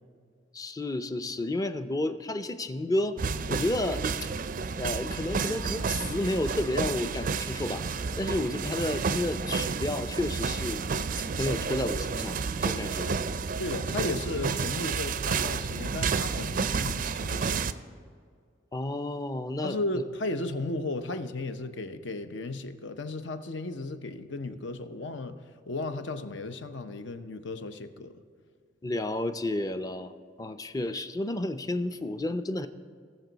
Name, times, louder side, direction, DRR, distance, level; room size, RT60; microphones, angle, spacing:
voice 1, 0.5-3.2 3.5-4.3 4.8-7.8 8.2-10.8 11.2-13.1 18.7-19.8 28.8-30.1 30.4-32.7, left 1 dB, 20° left, 10 dB, 0.5 m, -31 dB
sound 1, 3.2-17.7, right 5 dB, 45° right, 0.4 m, -31 dB
sound 2, 5.1-11.6, equal, 40° left, 2.3 m, -46 dB
voice 2, 11.5-11.8 13.0-13.2 13.6-17.6 19.6-25.4 25.7-28.2, left 2 dB, 70° left, 9 dB, 0.7 m, -35 dB
19.5 x 6.8 x 4.0 m, 2.1 s
head